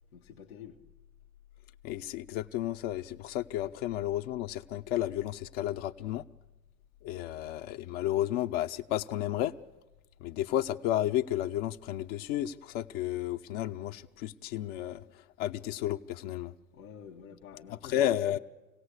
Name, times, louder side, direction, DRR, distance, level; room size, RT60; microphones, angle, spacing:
voice 1, 0.1-0.8 16.7-18.3, left 8 dB, 90° left, 1.4 m, -48 dB
voice 2, 1.8-6.2 7.0-9.5 10.2-15.0 15.4-16.5 17.9-18.4, left 12 dB, 60° left, 0.9 m, -32 dB
26.0 x 17.0 x 8.2 m
hypercardioid pair, 95°, 41 cm